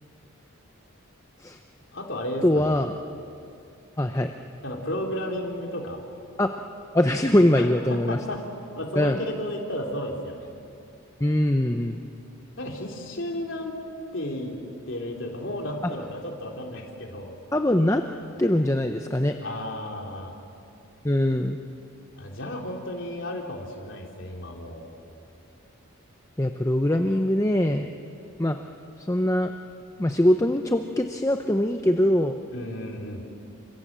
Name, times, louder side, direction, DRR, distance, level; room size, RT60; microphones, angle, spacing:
voice 1, 1.9-2.8 4.6-6.0 7.5-8.4 8.8-10.5 12.6-13.8 14.1-14.5 14.9-17.4 19.4-20.3 22.2-24.9 32.5-33.3, left 1 dB, 60° left, 0 dB, 3.7 m, -33 dB
voice 2, 2.4-2.9 4.0-4.3 6.4-6.5 6.9-8.2 8.9-9.2 11.2-12.0 17.5-18.0 18.4-19.4 21.0-21.6 26.4-27.9 28.4-28.6 29.0-29.5 30.0-32.4, left 1 dB, 15° left, 6 dB, 0.7 m, -22 dB
28.5 x 26.0 x 7.5 m, 2.6 s
head